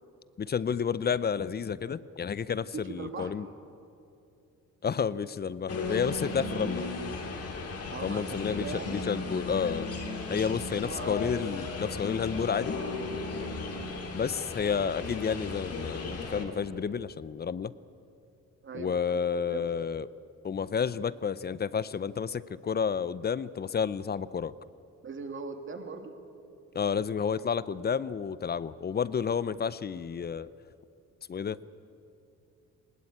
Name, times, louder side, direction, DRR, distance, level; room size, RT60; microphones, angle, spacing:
voice 1, 0.4-3.5 4.8-6.9 8.0-9.9 10.3-12.8 14.1-17.7 18.7-20.1 20.4-24.5 26.7-30.5 31.3-31.6, left 6 dB, 35° left, 18 dB, 0.6 m, -30 dB
voice 2, 2.7-3.3 7.9-8.9 10.3-11.1 13.6-13.9 18.6-19.2 19.5-19.6 25.0-26.1, right 5 dB, 40° right, 6 dB, 2.4 m, -41 dB
sound 1, 5.7-16.4, left 3 dB, 50° left, 3.3 m, -36 dB
20.0 x 19.5 x 8.7 m, 2.7 s
cardioid pair, 90°, 30 cm